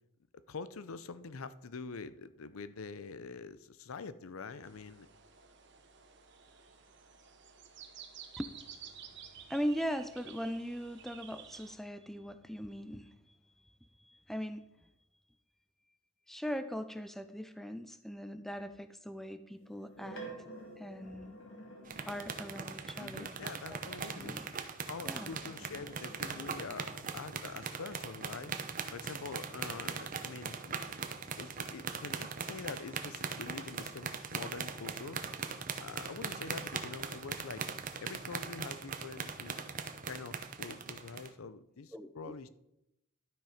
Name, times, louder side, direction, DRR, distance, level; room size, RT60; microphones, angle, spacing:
voice 1, 0.5-5.1 23.0-24.4 24.9-28.5 28.9-31.0 31.4-35.2 35.8-37.6 38.0-39.6 40.1-42.5, left 4 dB, 85° left, 15 dB, 0.6 m, -45 dB
sound 1, 4.6-11.8, right 7 dB, 55° right, 1.1 m, -53 dB
voice 2, 9.5-13.2 13.6-13.7 14.0-14.6 16.3-20.2 20.8-21.3 22.1-23.3 23.7-23.8 24.1-24.4 25.1-25.3 41.9-42.3, equal, ahead, 10 dB, 0.4 m, -40 dB
sound 2, 19.5-22.9 24.8-27.2 29.1-34.3 34.8-36.6, right 2 dB, 65° left, 2.0 m, -54 dB
sound 3, 21.9-41.3, right 5 dB, 40° right, 0.7 m, -40 dB
12.0 x 6.2 x 5.0 m, 0.83 s
head